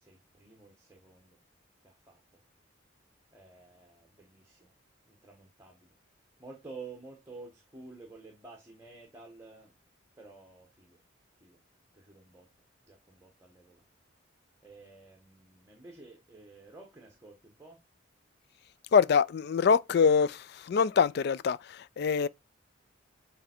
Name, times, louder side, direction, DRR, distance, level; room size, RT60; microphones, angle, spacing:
voice 1, 0.0-1.4 1.8-2.2 3.3-4.7 5.1-9.8 10.2-11.0 11.4-11.6 11.9-12.5 12.9-13.9 14.6-17.8, right 3 dB, 15° right, 1.2 m, -51 dB
voice 2, 18.9-22.3, left 6 dB, 55° left, 0.3 m, -24 dB
7.0 x 3.3 x 4.4 m
head